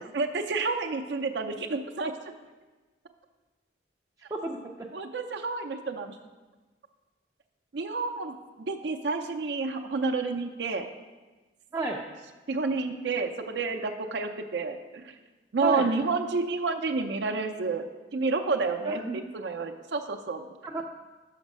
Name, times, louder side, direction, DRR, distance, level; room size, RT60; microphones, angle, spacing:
voice 1, 0.1-2.1 4.9-6.2 7.7-10.9 12.5-15.1 15.5-17.9 18.1-20.4, right 4 dB, 70° right, 5 dB, 0.5 m, -30 dB
voice 2, 4.3-4.9 11.7-12.0 15.6-15.9 18.8-19.2 20.6-20.8, right 2 dB, 15° right, 0 dB, 0.4 m, -32 dB
6.1 x 5.8 x 5.3 m, 1.2 s
head